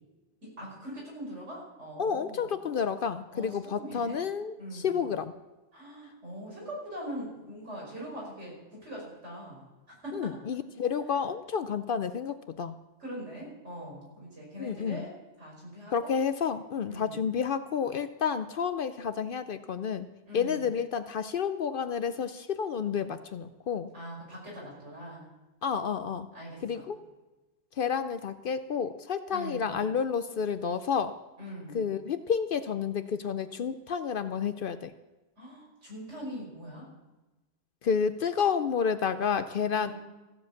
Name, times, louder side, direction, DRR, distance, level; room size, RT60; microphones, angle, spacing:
voice 1, 0.4-2.5 3.3-4.2 4.6-5.0 5.7-9.6 10.0-10.4 13.0-16.1 16.9-17.2 20.3-20.7 23.9-25.3 26.3-26.9 29.3-29.9 31.4-31.8 35.4-36.9 39.7-39.9, equal, 80° right, -3 dB, 5.6 m, -42 dB
voice 2, 2.0-5.3 10.1-12.8 14.6-15.0 15.9-20.1 20.3-23.9 25.6-26.3 26.6-27.0 27.8-31.2 31.7-34.9 37.8-39.9, left 6 dB, 60° left, 11 dB, 0.6 m, -30 dB
15.0 x 7.6 x 7.2 m, 1.1 s
omnidirectional pair, 1.2 m